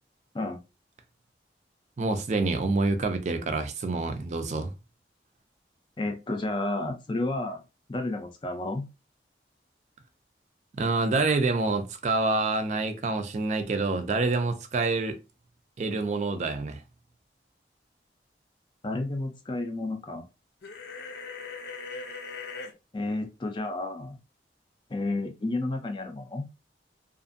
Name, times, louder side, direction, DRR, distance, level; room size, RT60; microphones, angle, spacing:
voice 1, 2.0-4.7 10.8-15.2 15.8-16.8, right 3 dB, 40° right, 0.4 m, -27 dB
voice 2, 6.0-7.6 7.9-8.9 18.8-20.3 22.9-24.2 24.9-26.5, left 2 dB, 25° left, 0.4 m, -31 dB
sound 1, 20.6-22.7, left 4 dB, 75° left, 0.6 m, -39 dB
2.5 x 2.4 x 2.5 m
head